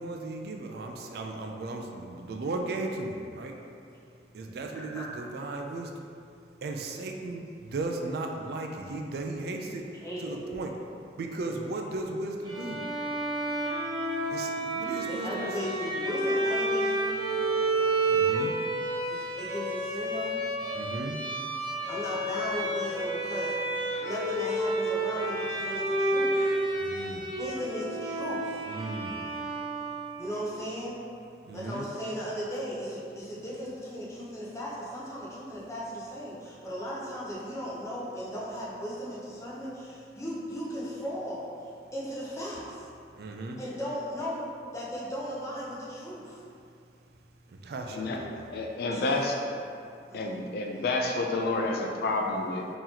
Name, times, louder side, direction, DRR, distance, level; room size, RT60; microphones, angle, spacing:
voice 1, 0.0-3.6 4.3-5.9 6.6-9.9 10.2-10.7 11.2-12.8 14.3-15.5 18.0-18.5 20.7-21.2 26.8-27.3 28.7-29.2 31.4-31.9 43.2-43.6 47.5-48.5, right 2 dB, 60° right, 3 dB, 0.3 m, -36 dB
voice 2, 4.7-5.1 9.8-10.4 11.5-11.7 15.1-17.2 19.1-20.4 21.9-23.7 24.0-26.5 27.4-28.6 30.2-31.0 31.5-41.4 41.9-42.9 43.6-46.4 48.9-49.1 50.1-50.4, equal, 15° left, -7 dB, 0.6 m, -37 dB
Bowed string instrument, 12.4-30.3, right 1 dB, 25° right, 0.6 m, -30 dB
voice 3, 48.5-49.3 50.1-52.7, left 2 dB, 55° left, 1 dB, 0.3 m, -29 dB
3.8 x 2.9 x 2.8 m, 2.4 s
head